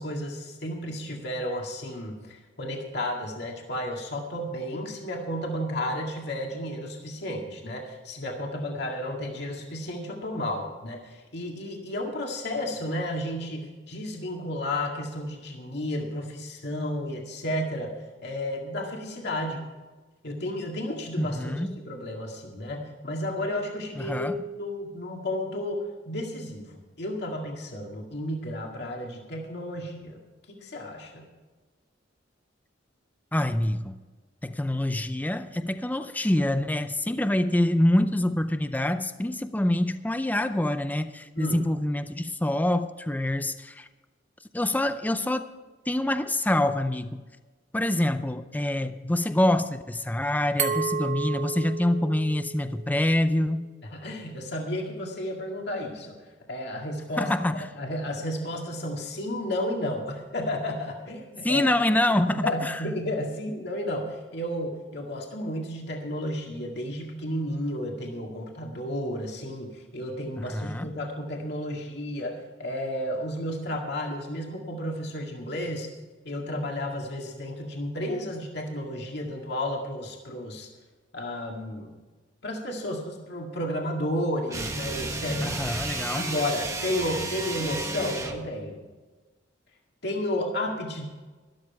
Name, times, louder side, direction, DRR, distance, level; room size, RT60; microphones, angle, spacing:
voice 1, 0.0-17.9 18.2-19.6 20.2-30.2 30.5-31.2 41.3-41.6 53.9-56.1 56.5-57.3 57.7-61.7 62.3-75.9 76.2-80.7 81.1-81.9 82.4-85.6 86.1-88.8 90.0-91.0, left 1 dB, 65° left, 1 dB, 2.0 m, -32 dB
voice 2, 21.2-21.7 24.0-24.4 33.3-34.0 34.4-43.9 44.5-45.5 45.9-47.2 47.7-53.7 57.2-57.7 61.4-62.8 70.4-70.9 85.4-86.3, left 1 dB, 10° left, 10 dB, 0.5 m, -26 dB
Glass, 50.6-53.4, right 5 dB, 40° right, 1.3 m, -32 dB
sound 1, 84.5-88.5, right 2 dB, 20° right, 1.3 m, -32 dB
13.0 x 12.5 x 4.8 m, 1.3 s
head